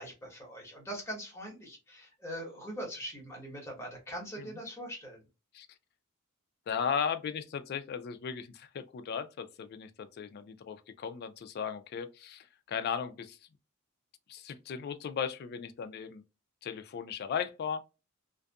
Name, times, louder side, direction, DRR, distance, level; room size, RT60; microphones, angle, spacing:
voice 1, 0.0-5.2, equal, 15° left, 1.1 m, -42 dB
voice 2, 6.7-13.4 14.3-16.2 16.6-17.8, left 7 dB, 45° left, 0.3 m, -36 dB
2.5 x 2.4 x 2.2 m
head